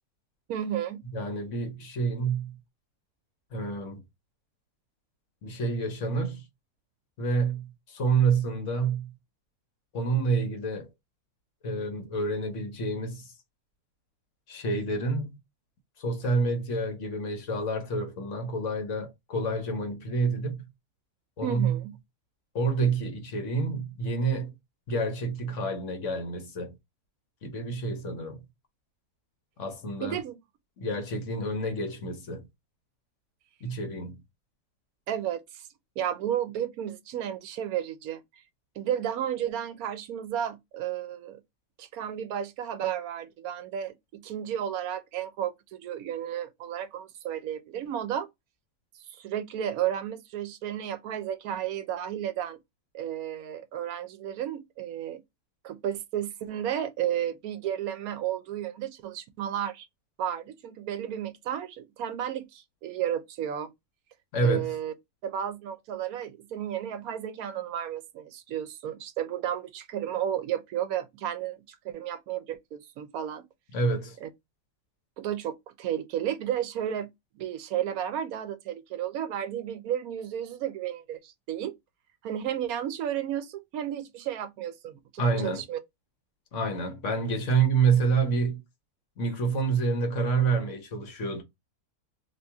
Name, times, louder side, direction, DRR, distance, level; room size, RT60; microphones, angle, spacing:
voice 1, 0.5-1.0 21.4-21.9 30.0-30.4 35.1-35.7 36.0-38.4 38.8-41.4 41.8-48.3 49.1-52.6 52.9-55.2 55.6-59.9 60.2-63.7 64.4-64.9 65.2-73.4 74.2-74.3 75.2-77.1 77.4-81.7 82.2-85.8, right 10 dB, 75° right, 1.0 m, -33 dB
voice 2, 1.1-2.6 3.5-4.0 5.4-6.5 7.2-9.1 9.9-10.9 11.6-13.3 14.5-15.3 16.0-20.7 21.4-21.8 22.5-24.6 24.9-26.7 27.4-28.4 29.6-30.2 30.8-32.4 33.6-34.2 64.3-64.7 73.7-74.2 85.2-85.6 86.5-88.6 89.2-91.4, right 4 dB, 60° left, 1.2 m, -28 dB
2.8 x 2.8 x 3.4 m
omnidirectional pair, 1.6 m